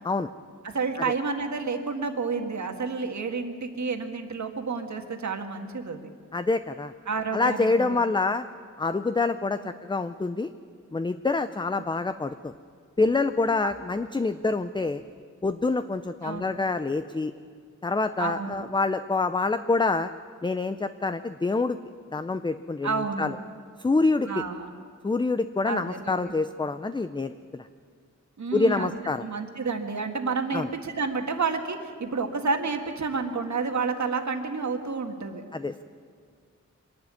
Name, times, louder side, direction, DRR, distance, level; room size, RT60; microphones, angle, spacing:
voice 1, 0.6-6.0 7.1-8.0 13.6-13.7 16.2-16.4 18.2-18.7 22.8-23.3 24.2-24.7 25.6-26.3 28.4-35.4, right 4 dB, 65° right, 4 dB, 1.8 m, -30 dB
voice 2, 6.3-6.9 7.3-8.5 8.8-10.5 10.9-12.5 13.0-15.0 15.4-17.3 17.8-20.1 20.4-21.8 22.1-23.4 23.8-24.4 25.0-27.7 28.5-29.2 30.5-30.7 35.5-35.8, left 3 dB, 15° left, 11 dB, 0.4 m, -26 dB
24.0 x 11.5 x 9.6 m, 2.1 s
wide cardioid pair, 120°, 30 cm